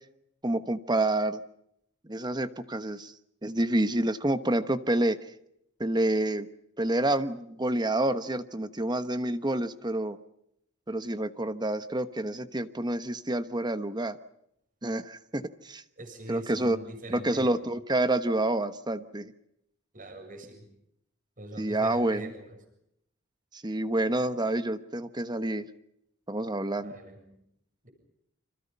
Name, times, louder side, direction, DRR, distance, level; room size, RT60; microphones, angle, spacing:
voice 1, 0.4-1.4 2.1-3.1 3.4-5.2 5.8-6.5 6.8-10.2 10.9-14.2 14.8-15.8 16.3-16.8 17.1-19.3 21.6-22.3 23.5-25.6 26.3-26.9, right 1 dB, 20° right, 11 dB, 1.2 m, -28 dB
voice 2, 16.0-17.7 19.9-20.6 21.4-22.6 26.8-27.2 27.8-27.9, right 1 dB, 40° right, 5 dB, 7.1 m, -43 dB
29.5 x 26.5 x 5.5 m, 0.77 s
head